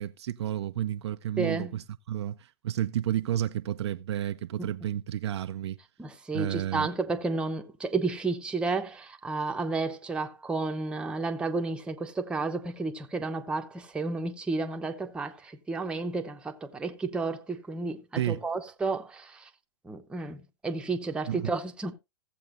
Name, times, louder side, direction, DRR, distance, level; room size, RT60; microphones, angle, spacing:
voice 1, 0.0-5.8 6.3-6.9 18.2-18.4 21.3-21.5, right 11 dB, 55° right, 0.4 m, -31 dB
voice 2, 1.4-1.8 4.6-4.7 6.0-19.5 19.8-22.0, right 3 dB, 5° right, 0.8 m, -32 dB
16.0 x 7.8 x 2.5 m
hypercardioid pair, 145°, 17 cm